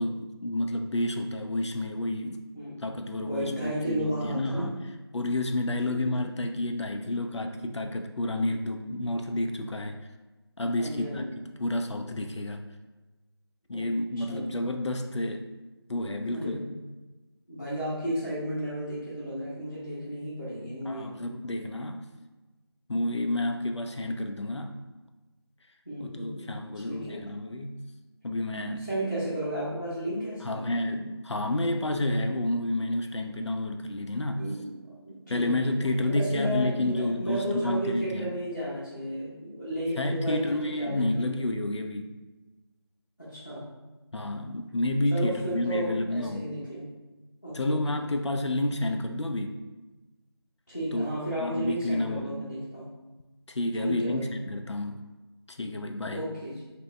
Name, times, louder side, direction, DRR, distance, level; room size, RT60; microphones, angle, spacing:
voice 1, 0.0-2.4 2.8-4.8 5.1-10.0 10.6-12.7 13.7-15.5 15.9-16.6 20.9-22.0 22.9-24.7 26.0-27.8 28.2-28.9 30.4-34.5 35.3-38.3 40.0-42.1 44.1-46.5 47.5-49.6 50.9-51.1 51.4-52.4 53.5-55.1 55.5-56.3, left 1 dB, 85° left, 5 dB, 0.4 m, -30 dB
voice 2, 2.5-2.9 3.2-4.7 5.9-6.3 10.8-11.3 13.7-13.9 14.3-14.5 16.3-16.7 17.5-21.1 25.9-27.2 28.8-30.6 34.4-41.1 43.2-43.6 45.1-46.9 47.4-48.0 50.7-52.9 53.8-54.3 56.1-56.6, right 1 dB, 35° left, -11 dB, 0.7 m, -33 dB
2.8 x 2.2 x 3.2 m, 1.2 s
figure-of-eight pair, 180°, 14 cm